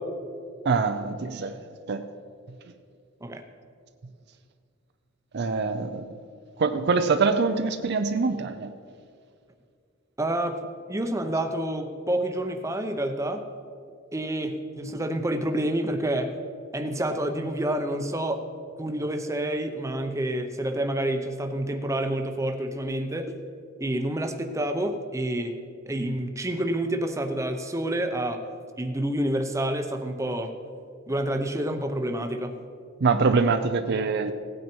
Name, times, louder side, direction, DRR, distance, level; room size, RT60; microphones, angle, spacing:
voice 1, 0.6-1.6 1.9-2.1 2.7-2.8 5.3-6.1 6.6-8.7 33.0-34.3, right 4 dB, 55° right, 9 dB, 0.5 m, -24 dB
voice 2, 10.2-13.5 14.1-16.3 16.7-18.4 18.8-23.4 23.8-25.5 25.9-28.5 28.8-30.6 31.1-32.5, right 1 dB, 15° right, 6 dB, 0.7 m, -28 dB
16.5 x 9.4 x 4.5 m, 2.3 s
head